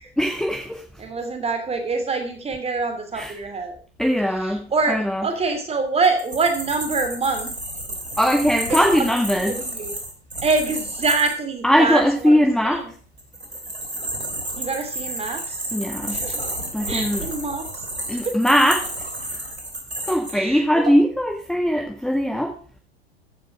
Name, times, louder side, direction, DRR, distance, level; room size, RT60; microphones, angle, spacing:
voice 1, 0.2-0.8 3.1-3.3 4.0-5.3 8.2-9.6 11.6-12.8 15.7-16.3 16.7-17.3 18.1-18.8 19.3-19.4 20.1-22.5, equal, ahead, 1 dB, 1.7 m, -20 dB
voice 2, 1.0-3.8 4.4-5.0 5.2-7.5 8.7-8.8 9.3-9.9 10.4-12.3 12.6-12.8 14.5-15.6 16.1-16.4 16.9-17.7 18.1-18.4 20.3-20.8, right 4 dB, 20° right, 7 dB, 2.9 m, -25 dB
sound 1, 6.0-11.3 13.2-20.3, right 1 dB, 90° right, 3.4 m, -31 dB
14.5 x 6.0 x 6.1 m, 0.42 s
figure-of-eight pair, 90°, 31 cm